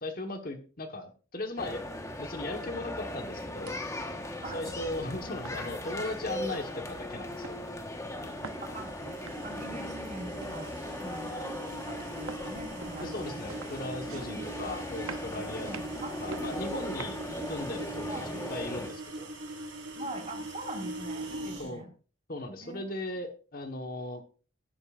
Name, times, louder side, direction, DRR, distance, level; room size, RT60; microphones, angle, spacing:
voice 1, 0.0-1.8 2.2-3.8 4.5-7.7 13.0-15.7 16.2-17.2 17.5-19.3 21.6-21.8 22.3-24.2, left 2 dB, 45° left, 5 dB, 1.3 m, -37 dB
sound 1, 1.6-18.9, left 1 dB, 15° left, 1.2 m, -39 dB
sound 2, 3.5-17.6, right 5 dB, 90° right, 0.7 m, -49 dB
sound 3, 7.8-21.7, right 2 dB, 70° right, 3.2 m, -42 dB
voice 2, 8.6-8.9 9.4-10.7 11.0-11.3 11.8-13.4 14.1-14.4 15.3-16.9 18.1-18.3 19.9-21.9 22.6-22.8 23.7-23.8, right 1 dB, 35° right, 4 dB, 1.7 m, -43 dB
12.5 x 10.5 x 2.5 m, 0.37 s
head